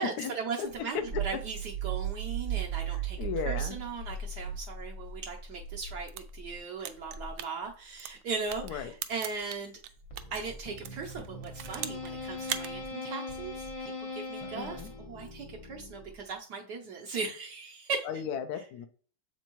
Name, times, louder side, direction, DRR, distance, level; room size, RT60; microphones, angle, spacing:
voice 1, 0.0-3.2 3.4-9.8 10.3-18.1, right 5 dB, 65° right, 0 dB, 1.3 m, -38 dB
sound 1, 0.7-6.6 7.0-7.3 8.5-8.8 10.0-10.4, right 8 dB, 45° right, 1.0 m, -36 dB
voice 2, 2.9-3.8 8.6-8.9 14.5-14.9 18.0-18.9, left 7 dB, 70° left, 8 dB, 1.0 m, -36 dB
sound 2, 6.0-10.4 10.8-12.1 12.4-12.7, right 11 dB, 90° right, 1.3 m, -39 dB
sound 3, 10.1-16.3, left 2 dB, 30° left, 0.6 m, -41 dB
7.8 x 4.4 x 3.0 m, 0.43 s
omnidirectional pair, 2.0 m